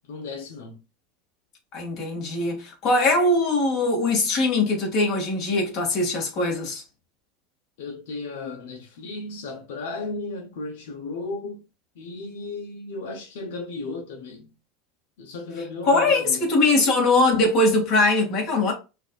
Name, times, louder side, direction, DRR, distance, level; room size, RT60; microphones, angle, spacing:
voice 1, 0.1-0.8 7.8-11.6 11.9-14.5 15.2-16.5, left 3 dB, 80° left, 0.9 m, -35 dB
voice 2, 1.7-6.8 15.8-18.7, left 2 dB, 45° left, 2.1 m, -21 dB
5.8 x 2.7 x 2.4 m
supercardioid pair, 130°, 0 cm